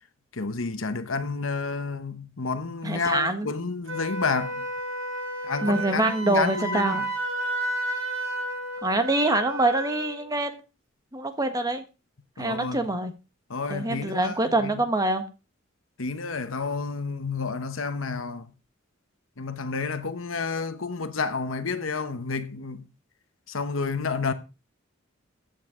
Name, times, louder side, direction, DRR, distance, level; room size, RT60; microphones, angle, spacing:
voice 1, 0.3-4.7 5.4-7.1 12.4-12.9 13.5-14.8 16.0-18.5 19.4-22.8 23.5-24.3, left 4 dB, 70° left, 1.2 m, -30 dB
voice 2, 2.8-3.5 5.6-7.0 8.8-10.6 11.1-11.8 12.4-13.1 13.7-15.2, right 2 dB, 20° right, 1.4 m, -25 dB
Wind instrument woodwind instrument, 3.9-10.2, right 1 dB, 75° right, 6.3 m, -32 dB
14.5 x 8.1 x 3.8 m
head